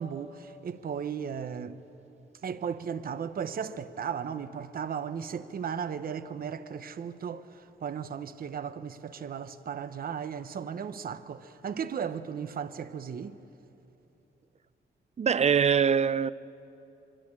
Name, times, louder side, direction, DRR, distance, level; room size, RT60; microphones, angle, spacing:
voice 1, 0.0-1.8 2.4-13.4, right 7 dB, 50° right, 1.0 m, -36 dB
voice 2, 15.2-16.3, right 7 dB, 35° right, 0.5 m, -23 dB
24.5 x 24.0 x 8.9 m
cardioid pair, 100°, 19 cm